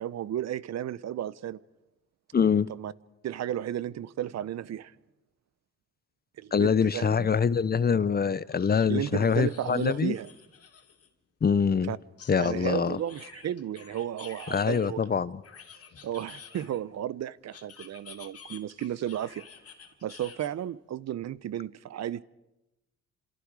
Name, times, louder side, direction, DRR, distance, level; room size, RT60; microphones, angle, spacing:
voice 1, 0.0-1.6 2.7-2.9 3.2-4.9 6.4-7.3 8.9-10.3 11.9-12.0 12.4-15.0 16.0-19.4 20.0-22.2, right 11 dB, 60° right, 0.8 m, -33 dB
voice 2, 2.3-2.7 6.5-10.2 11.4-11.9 12.3-13.0 14.5-15.4, left 6 dB, 30° left, 0.8 m, -24 dB
sound 1, 7.5-7.6 8.5-11.1 12.2-14.9 15.4-17.0 17.5-20.5, left 6 dB, 50° left, 2.9 m, -50 dB
29.5 x 27.0 x 4.9 m
cardioid pair, 90°, 30 cm